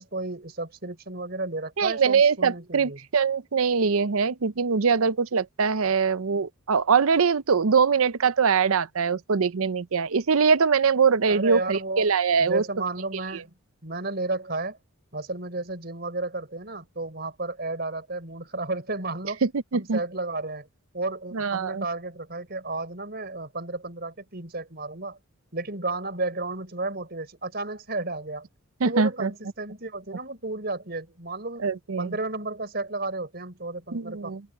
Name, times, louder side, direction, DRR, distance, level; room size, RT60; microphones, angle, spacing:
voice 1, 0.0-3.0 11.3-12.1 12.4-13.5 13.8-14.8 15.1-19.4 19.7-20.7 20.9-25.2 25.5-28.5 28.8-31.7 32.0-34.3, right 2 dB, 45° right, 4.9 m, -32 dB
voice 2, 1.8-12.6 19.4-20.0 21.3-21.8 28.8-29.3 31.6-32.1 33.9-34.4, right 5 dB, 80° right, 0.6 m, -23 dB
open air
head